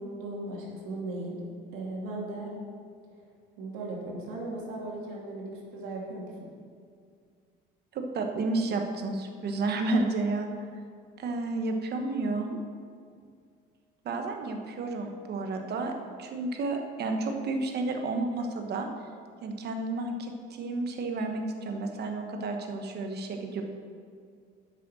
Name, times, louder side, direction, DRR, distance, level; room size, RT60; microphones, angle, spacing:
voice 1, 0.0-1.4 1.7-2.5 3.6-6.3, right 2 dB, 80° right, -3 dB, 2.4 m, -37 dB
voice 2, 7.9-10.5 11.2-12.6 14.0-18.9 19.4-23.6, right 3 dB, 50° right, 4 dB, 1.2 m, -31 dB
8.3 x 6.2 x 6.3 m, 2.2 s
cardioid pair, 100°, 21 cm